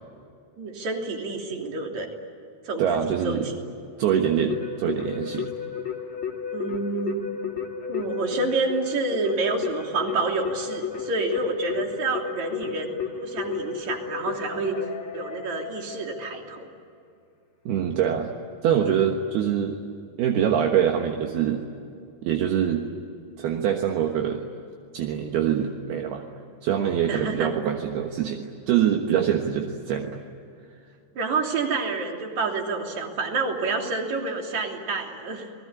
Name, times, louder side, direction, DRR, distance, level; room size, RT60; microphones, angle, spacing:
voice 1, 0.6-2.2 2.7-3.6 6.5-7.3 7.9-14.8 15.1-16.7 27.1-27.5 31.2-35.5, right 3 dB, 45° right, 2 dB, 4.1 m, -28 dB
voice 2, 2.8-3.5 4.0-5.5 17.7-18.3 18.6-19.8 20.2-21.6 22.2-22.8 23.4-24.4 24.9-26.2 26.6-30.2, right 9 dB, 70° right, 2 dB, 3.2 m, -24 dB
Keyboard (musical), 4.1-16.6, left 7 dB, 40° left, 2.4 m, -33 dB
29.0 x 21.0 x 9.8 m, 2.4 s
omnidirectional pair, 4.9 m